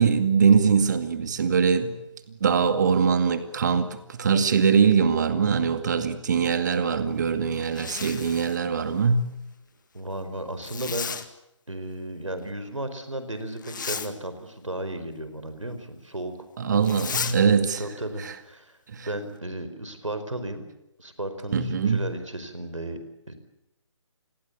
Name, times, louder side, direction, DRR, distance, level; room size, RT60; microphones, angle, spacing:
voice 1, 0.0-2.0 2.4-9.3 16.6-17.8 18.2-18.3 18.9-19.1 21.5-22.0, right 6 dB, 35° right, 10 dB, 2.2 m, -22 dB
Zipper (clothing), 7.6-8.6 10.6-11.3 13.6-14.1 16.8-17.4, left 6 dB, 40° left, 1.9 m, -33 dB
voice 2, 9.9-11.1 11.7-16.3 17.8-18.8 19.1-20.6 21.0-23.0 23.3-23.4, right 1 dB, 75° right, 10 dB, 4.8 m, -34 dB
28.0 x 21.5 x 8.5 m, 0.88 s
figure-of-eight pair, 150°, 16 cm